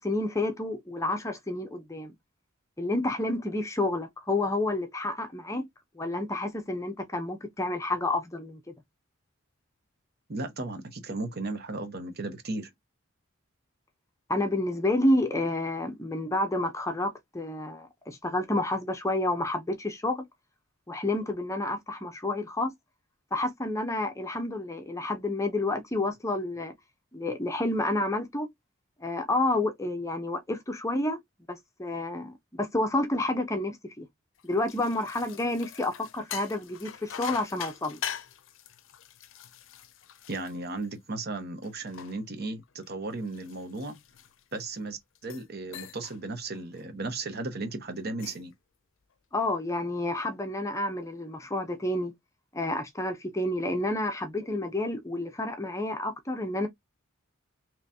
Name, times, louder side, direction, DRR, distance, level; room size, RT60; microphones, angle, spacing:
voice 1, 0.0-2.1 2.8-5.7 6.0-8.6 14.3-20.2 20.9-22.7 23.3-26.7 27.1-28.5 29.0-31.2 31.5-34.1 34.4-38.0 49.3-52.1 52.5-56.7, left 2 dB, 15° left, 0.6 m, -29 dB
voice 2, 10.3-12.7 40.3-44.0 44.5-48.5, right 2 dB, 50° right, 1.1 m, -35 dB
sound 1, 34.4-41.2 41.6-44.7 45.2-45.5 45.7-46.2 46.6-46.8 48.0-48.5, left 9 dB, 65° left, 0.5 m, -43 dB
3.9 x 3.0 x 2.7 m
head